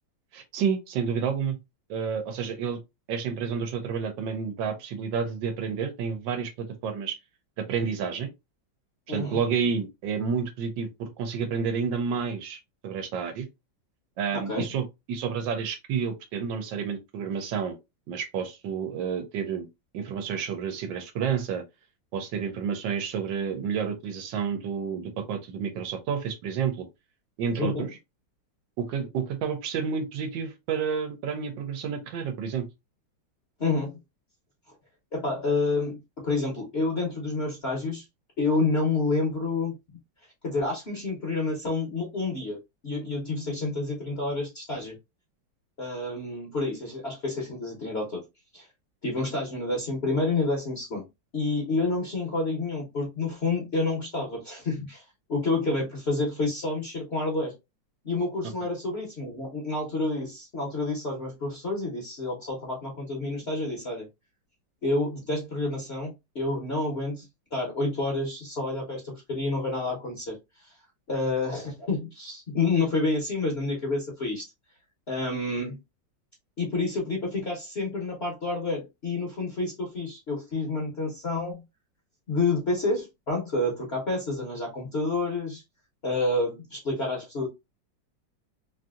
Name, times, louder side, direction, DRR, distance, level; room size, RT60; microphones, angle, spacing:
voice 1, 0.3-1.6 1.9-2.8 3.1-7.2 7.6-8.3 9.1-13.5 14.2-17.8 18.1-19.7 19.9-21.6 22.1-26.9 27.4-27.9 28.8-32.7, right 6 dB, 80° right, 1.4 m, -30 dB
voice 2, 9.1-9.4 14.3-14.7 27.6-27.9 33.6-34.0 35.1-38.0 38.4-39.7 40.4-45.0 45.8-48.2 48.5-48.7 49.0-51.0 51.3-55.0 55.3-57.6 58.0-64.1 64.8-67.3 67.5-70.7 71.1-74.4 75.1-75.8 76.6-81.6 82.3-85.6 86.0-87.5, left 3 dB, 45° left, 0.9 m, -29 dB
3.3 x 2.6 x 2.4 m
omnidirectional pair, 2.0 m